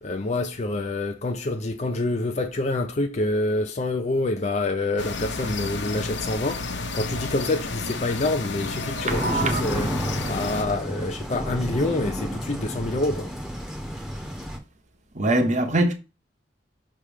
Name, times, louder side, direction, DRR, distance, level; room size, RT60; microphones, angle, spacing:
voice 1, 0.0-13.3, left 2 dB, 40° left, 0.5 m, -27 dB
sound 1, 5.0-10.6, left 3 dB, 90° left, 1.0 m, -32 dB
voice 2, 8.8-9.6 15.1-15.9, right 2 dB, 40° right, 0.9 m, -23 dB
sound 2, 9.1-14.6, equal, ahead, 1.0 m, -31 dB
5.9 x 3.3 x 5.0 m
head